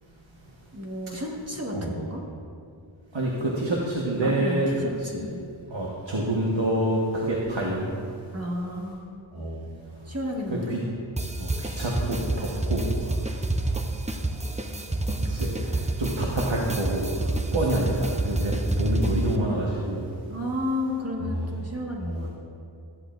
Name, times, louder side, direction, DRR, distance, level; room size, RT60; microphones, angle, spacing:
voice 1, 0.7-2.2 4.2-5.4 8.3-9.4 10.0-10.7 20.3-22.3, left 1 dB, 30° right, -1 dB, 1.6 m, -32 dB
voice 2, 3.1-4.7 5.0-5.2 5.7-7.9 9.3-10.1 10.5-10.8 11.4-13.8 14.1-20.1 21.4-21.5 22.0-22.3, right 1 dB, 65° right, -4 dB, 1.4 m, -28 dB
sound 1, 11.2-19.3, right 2 dB, 15° right, 0.7 m, -28 dB
14.0 x 10.5 x 2.6 m, 2.5 s
wide cardioid pair, 45°, 48 cm